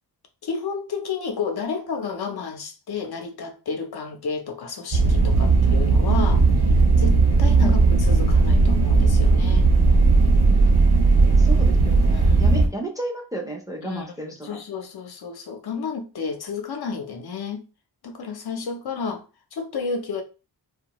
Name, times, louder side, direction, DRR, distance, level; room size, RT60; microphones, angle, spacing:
voice 1, 0.4-6.5 7.0-9.7 12.1-12.6 13.8-17.7 18.0-19.3 19.5-20.2, left 5 dB, 65° left, 0.6 m, -31 dB
sound 1, 4.9-12.7, right 3 dB, 65° right, 1.1 m, -17 dB
voice 2, 11.4-14.6, right 2 dB, 10° right, 0.5 m, -33 dB
2.6 x 2.3 x 2.9 m
wide cardioid pair, 135°, 42 cm